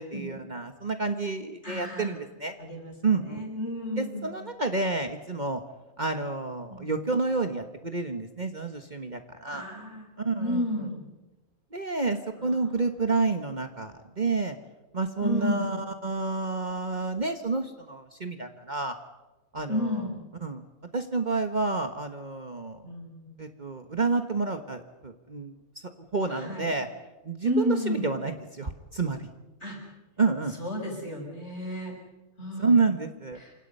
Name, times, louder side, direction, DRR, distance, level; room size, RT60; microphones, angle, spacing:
voice 1, 0.0-2.5 3.0-3.4 4.0-5.6 6.0-9.7 10.2-10.6 11.7-14.6 14.9-19.0 19.5-20.0 20.4-20.6 20.9-22.8 23.4-25.6 26.1-26.9 27.2-29.3 30.2-30.5 32.6-33.4, right 3 dB, 35° right, 7 dB, 1.5 m, -29 dB
voice 2, 1.6-2.2 2.6-4.3 6.7-6.9 9.5-10.1 10.4-11.0 12.4-12.8 15.2-15.7 19.7-20.2 22.8-23.4 26.3-26.7 27.4-28.1 29.6-29.8 30.6-32.0 32.4-32.8 33.4-33.5, left 1 dB, 55° left, 0 dB, 6.9 m, -32 dB
28.5 x 26.0 x 5.5 m, 1.1 s
omnidirectional pair, 1.4 m